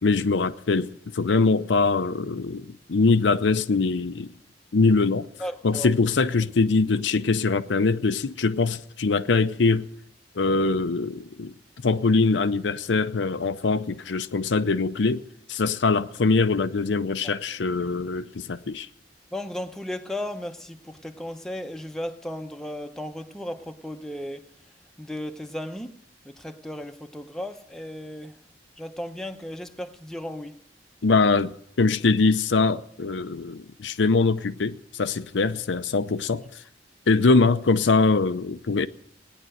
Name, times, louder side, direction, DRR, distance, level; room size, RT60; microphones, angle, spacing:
voice 1, 0.0-4.3 4.7-5.3 5.6-9.9 10.4-11.5 11.8-15.2 15.5-18.9 31.0-36.4 37.1-38.9, left 3 dB, 85° left, 0.6 m, -23 dB
voice 2, 5.4-5.9 17.2-17.4 19.3-24.5 25.0-28.4 28.8-30.6, left 1 dB, 5° left, 0.9 m, -35 dB
17.5 x 10.0 x 7.9 m
head